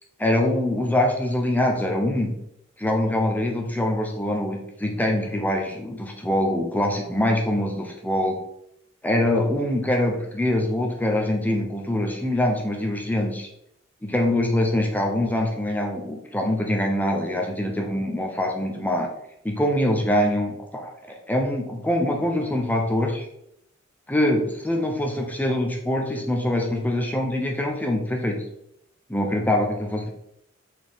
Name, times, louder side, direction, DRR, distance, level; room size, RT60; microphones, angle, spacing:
voice 1, 0.2-2.3 2.8-8.4 9.0-13.5 14.0-19.1 19.4-23.3 24.1-28.4 29.1-30.1, left 1 dB, 10° left, 1 dB, 0.7 m, -24 dB
6.1 x 4.4 x 3.6 m, 0.77 s
head